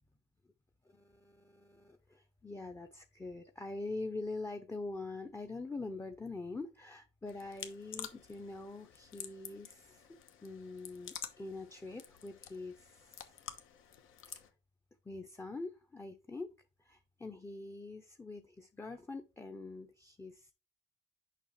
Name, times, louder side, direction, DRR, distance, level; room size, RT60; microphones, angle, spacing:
voice 1, 0.9-10.0 10.4-13.3 14.3-14.4 15.1-16.5 16.8-20.5, left 3 dB, 10° left, 0.6 m, -44 dB
sound 1, 7.3-14.5, left 9 dB, 75° left, 1.0 m, -50 dB
6.7 x 5.5 x 3.1 m
cardioid pair, 105°, 21 cm